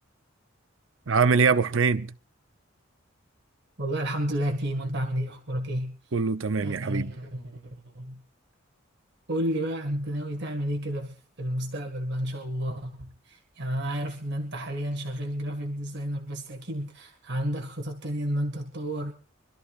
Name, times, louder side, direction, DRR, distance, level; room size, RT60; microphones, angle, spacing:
voice 1, 1.1-2.1 6.1-7.1, right 5 dB, 75° right, 0.7 m, -23 dB
voice 2, 3.8-6.0 6.6-8.2 9.3-19.1, equal, 55° right, 2.0 m, -31 dB
25.5 x 13.5 x 2.5 m
head